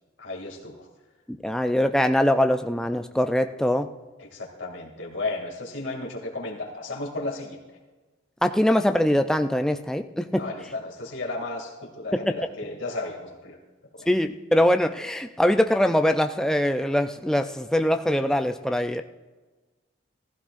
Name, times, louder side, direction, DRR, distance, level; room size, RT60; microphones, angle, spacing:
voice 1, 0.2-0.9 4.2-7.6 10.3-13.6 14.0-14.1, left 2 dB, 70° left, -1 dB, 2.4 m, -34 dB
voice 2, 1.3-3.9 8.4-10.4 12.1-12.4 14.1-19.0, left 1 dB, 5° left, 7 dB, 0.3 m, -23 dB
15.5 x 15.0 x 2.5 m, 1.2 s
head